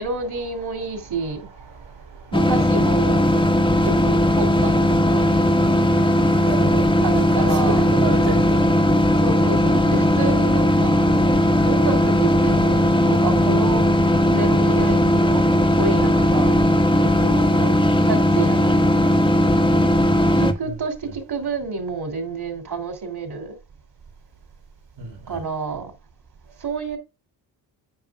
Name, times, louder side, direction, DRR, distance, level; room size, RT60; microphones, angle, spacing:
voice 1, 0.0-1.5 2.3-3.2 3.8-5.3 7.0-7.9 9.2-14.0 14.3-16.7 17.0-17.7 18.0-19.1 20.4-23.6 25.3-25.9 26.6-27.0, right 4 dB, 55° right, 3.0 m, -29 dB
voice 2, 0.8-1.3 1.5-2.4 6.4-6.9 7.3-8.7 20.6-20.8 21.0-21.1 25.0-25.4, right 4 dB, 80° right, 4.3 m, -32 dB
sound 1, 2.3-20.5, left 1 dB, 10° left, 1.3 m, -18 dB
10.5 x 7.6 x 2.4 m
cardioid pair, 75°, 46 cm